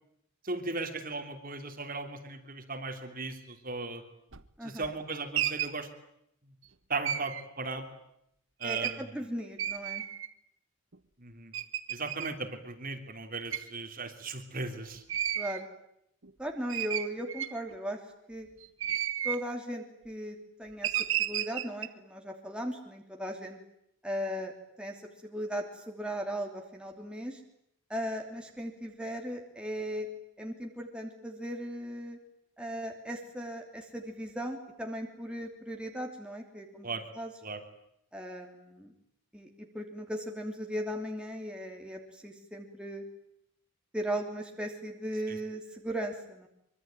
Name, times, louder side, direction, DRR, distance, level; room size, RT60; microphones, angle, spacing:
voice 1, 0.4-4.0 4.6-5.9 6.9-7.9 8.6-9.3 11.2-11.5 11.9-15.0 36.8-37.0 37.4-37.6 45.3-45.4, right 3 dB, 40° right, 6 dB, 3.3 m, -37 dB
sound 1, 4.3-4.4 4.8-5.8 7.0-7.4 8.6-9.0 9.6-10.3 10.9-11.0 11.5-12.3 13.5-13.7 15.1-15.6 16.2-16.3 16.7-17.7 18.6-19.4 20.8-21.9, right 11 dB, 60° right, 1.3 m, -32 dB
voice 2, 4.6-4.9 8.6-10.0 15.3-15.7 16.4-18.0 18.3-18.5 19.2-23.6 24.0-24.5 24.8-27.4 27.9-30.1 30.4-32.2 32.6-36.9 37.1-37.3 38.1-38.9 39.3-43.0 43.9-46.5, equal, 5° right, 2 dB, 3.0 m, -37 dB
25.0 x 24.5 x 9.1 m, 0.76 s
head